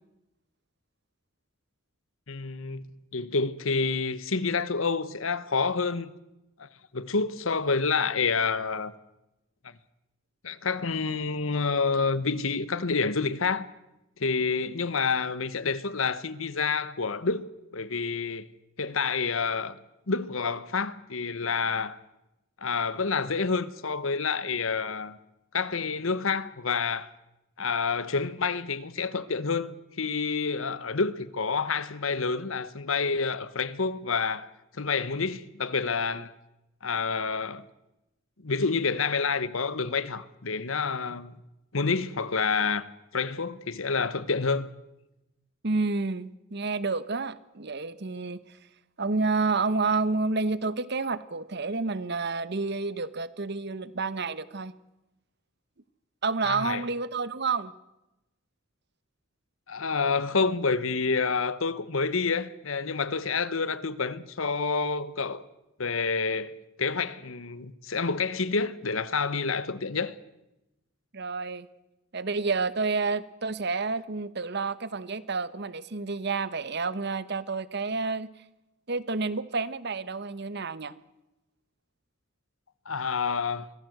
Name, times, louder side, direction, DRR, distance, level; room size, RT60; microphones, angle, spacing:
voice 1, 2.3-2.8 3.1-6.1 6.6-6.7 6.9-8.9 10.4-13.7 14.2-18.5 18.8-19.8 20.1-22.0 22.6-25.2 25.5-27.1 27.6-34.5 34.7-36.3 36.8-37.6 38.4-41.4 41.7-42.8 43.1-44.7 56.4-56.8 59.7-65.4 65.8-70.1 82.8-83.7, left 4 dB, 80° left, 1.2 m, -28 dB
voice 2, 45.6-48.4 49.0-54.7 56.2-57.7 71.1-71.7 72.1-78.3 78.9-80.9, right 4 dB, 55° right, 1.0 m, -29 dB
24.0 x 17.0 x 7.9 m
head